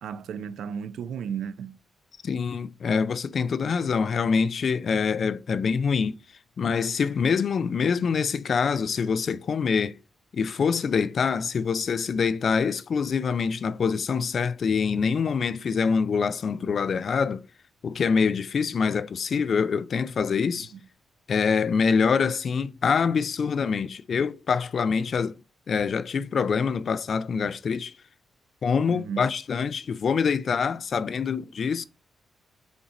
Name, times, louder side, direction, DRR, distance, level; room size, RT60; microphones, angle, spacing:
voice 1, 0.0-1.8 20.6-20.8 28.9-29.3, right 7 dB, 90° right, 0.6 m, -34 dB
voice 2, 2.2-6.2 6.6-10.0 10.3-17.4 17.8-20.7 21.3-25.4 25.7-27.9 28.6-31.8, left 6 dB, 45° left, 0.4 m, -25 dB
7.0 x 3.8 x 4.1 m
wide cardioid pair, 160°, 0 cm